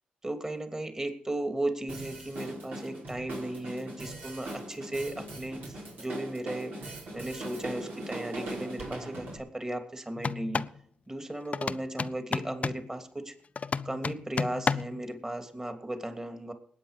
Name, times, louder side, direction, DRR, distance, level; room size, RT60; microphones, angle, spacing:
voice 1, 0.2-10.7 11.1-13.3 13.8-16.5, right 1 dB, 20° right, 6 dB, 2.9 m, -36 dB
Drum kit, 1.9-9.4, right 1 dB, 70° right, 5.1 m, -40 dB
sound 1, 10.2-10.8 11.5-12.9 13.6-15.0, left 5 dB, 45° left, 0.6 m, -32 dB
19.5 x 8.7 x 5.2 m, 0.65 s
supercardioid pair, 50°, 3 cm